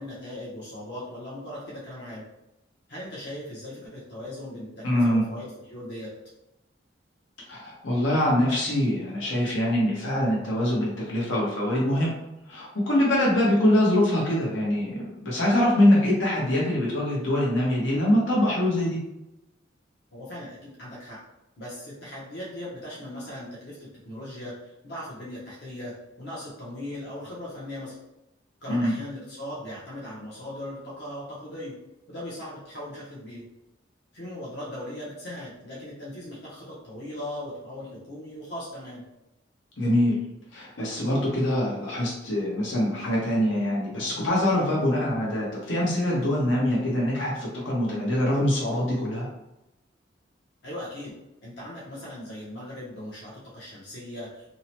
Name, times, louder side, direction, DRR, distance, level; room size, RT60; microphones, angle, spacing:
voice 1, 0.0-2.2 2.9-6.1 20.1-21.2 21.6-28.0 28.6-31.8 32.1-33.4 34.1-39.0 50.6-51.2 51.4-54.5, left 1 dB, 60° left, -6 dB, 0.7 m, -39 dB
voice 2, 4.8-5.2 7.5-12.1 12.5-19.0 28.7-28.9 39.8-40.2 40.5-49.3, left 1 dB, 90° left, -4 dB, 0.9 m, -24 dB
2.7 x 2.1 x 2.8 m, 0.91 s
head